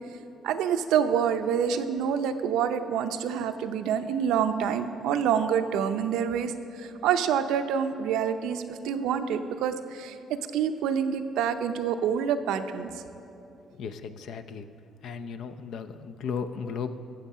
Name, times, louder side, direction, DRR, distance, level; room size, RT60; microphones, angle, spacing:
voice 1, 0.4-6.5 6.8-12.9, right 8 dB, 90° right, 8 dB, 0.6 m, -27 dB
voice 2, 13.7-14.7 15.0-16.9, left 6 dB, 65° left, 9 dB, 0.6 m, -35 dB
14.5 x 7.3 x 5.6 m, 2.7 s
cardioid pair, 125°, 0 cm